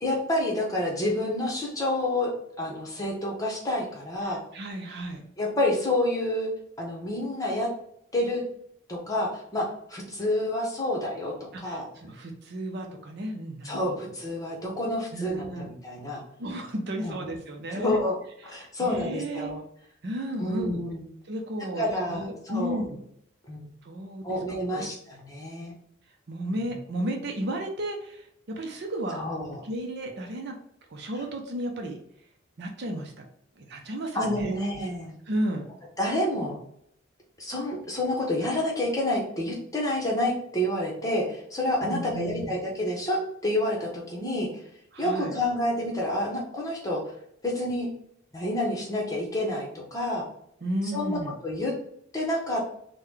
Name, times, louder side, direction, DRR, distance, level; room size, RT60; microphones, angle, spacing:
voice 1, 0.0-2.3 2.6-4.4 5.4-6.5 6.8-7.7 8.1-8.4 8.9-11.9 13.6-16.2 17.0-17.2 17.7-18.2 18.4-19.6 20.4-21.1 21.8-22.8 23.5-23.7 24.2-25.7 26.6-26.7 29.1-29.6 34.1-35.1 36.0-36.6 37.4-44.6 45.0-47.0 47.4-47.9 48.3-50.2 50.9-51.7 52.1-52.6, left 1 dB, 15° left, -3 dB, 0.9 m, -29 dB
voice 2, 4.2-5.2 11.5-14.0 15.1-15.7 16.4-18.0 18.5-19.5 20.0-20.8 21.3-23.0 23.8-24.4 24.7-24.9 26.3-29.3 29.6-30.6 30.9-32.0 32.6-33.2 33.6-34.8 35.3-35.7 41.8-42.5 44.9-45.3 50.6-51.4, right 1 dB, 55° right, 2 dB, 0.6 m, -33 dB
3.7 x 2.2 x 3.2 m, 0.71 s
head